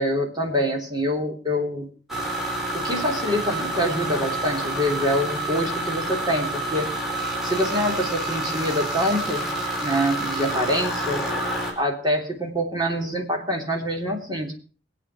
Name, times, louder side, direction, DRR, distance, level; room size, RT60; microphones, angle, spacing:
voice 1, 0.0-1.9 2.7-6.9 7.4-9.5 9.8-11.2 11.8-14.6, equal, 25° right, 1 dB, 3.2 m, -25 dB
sound 1, 2.1-11.7, right 1 dB, ahead, 4.3 m, -28 dB
23.0 x 8.6 x 4.8 m, 0.40 s
head